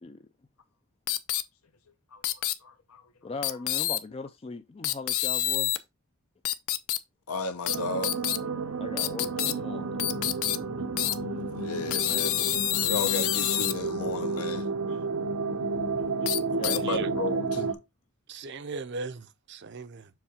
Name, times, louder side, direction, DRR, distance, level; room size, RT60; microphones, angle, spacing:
sound 1, 1.1-1.4 2.2-2.5 3.4-4.0 4.8-5.8 6.5-7.0 7.7-7.8 8.0-8.4 9.0-9.5 10.0-10.6 11.0-11.1 11.9-13.7 16.3-16.8, left 13 dB, 70° left, 0.6 m, -27 dB
voice 1, 2.6-3.0 7.3-8.2 11.5-14.7 16.6-17.8, left 3 dB, 85° left, 1.1 m, -34 dB
voice 2, 3.2-5.8 8.8-10.0 16.5-17.0, left 3 dB, 25° left, 0.3 m, -39 dB
sound 2, 7.7-17.7, right 4 dB, 85° right, 0.9 m, -31 dB
voice 3, 16.7-17.1 18.3-20.1, right 3 dB, 50° right, 0.6 m, -38 dB
7.2 x 3.2 x 4.9 m
head